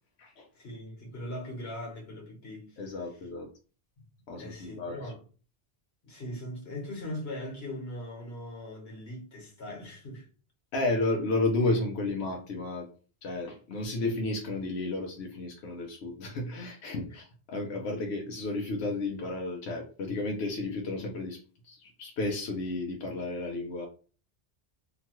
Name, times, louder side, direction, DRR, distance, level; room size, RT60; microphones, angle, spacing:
voice 1, 0.5-2.8 3.1-3.2 4.3-5.2 6.0-10.3 17.0-17.2, left 1 dB, 70° left, 1.3 m, -40 dB
voice 2, 2.8-3.5 4.3-5.1 10.7-12.9 13.2-23.9, left 2 dB, 85° left, 0.9 m, -32 dB
2.9 x 2.3 x 2.9 m
omnidirectional pair, 1.1 m